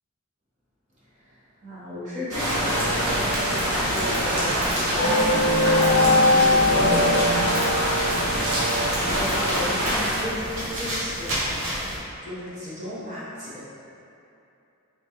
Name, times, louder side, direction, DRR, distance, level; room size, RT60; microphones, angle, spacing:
voice 1, 1.1-11.8 12.2-13.6, equal, 35° right, -9 dB, 0.9 m, -35 dB
sound 1, 2.3-10.1, equal, 90° right, 1.0 m, -25 dB
sound 2, 2.5-8.9, left 1 dB, 40° left, 0.6 m, -23 dB
sound 3, 2.7-12.0, equal, 60° right, 0.8 m, -32 dB
3.4 x 2.9 x 3.0 m, 2.7 s
head